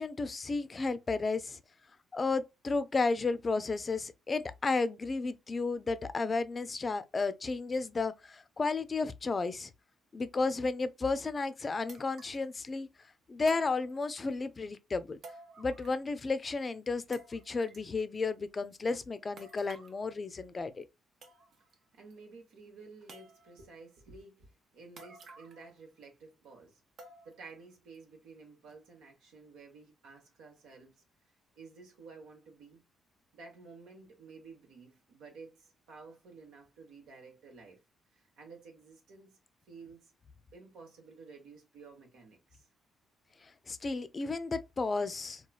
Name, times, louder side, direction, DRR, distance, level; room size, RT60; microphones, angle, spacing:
voice 1, 0.0-1.6 2.1-9.7 10.1-12.9 13.3-15.2 15.6-20.9 43.7-45.4, left 3 dB, 30° left, 0.4 m, -33 dB
sound 1, 11.1-11.2 11.9-12.5 13.5-14.3 15.2-16.2 16.4-16.5 17.1-17.9 19.4-20.0 20.8-20.9 21.2-21.7 22.1-22.2 23.1-23.7 25.0-25.7 26.0-26.1 27.0-27.5 27.9-28.0 28.7-28.8, right 2 dB, 60° right, 0.7 m, -53 dB
voice 2, 21.9-26.8 27.2-31.0 31.6-32.8 33.3-37.8 38.1-39.4 39.6-40.1 40.5-42.7, right 4 dB, 90° right, 1.0 m, -53 dB
3.0 x 2.3 x 2.3 m
cardioid pair, 90°, 0 cm